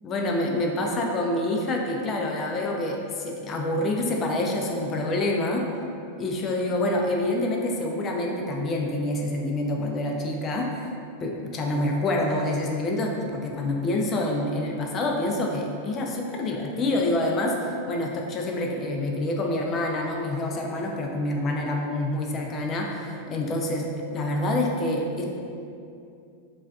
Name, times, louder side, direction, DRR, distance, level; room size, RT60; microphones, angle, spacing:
voice 1, 0.0-5.7 6.2-10.9 11.2-23.9 24.1-25.2, left 1 dB, 30° left, 0 dB, 0.3 m, -27 dB
2.4 x 2.2 x 2.3 m, 2.6 s
hypercardioid pair, 125°, 0 cm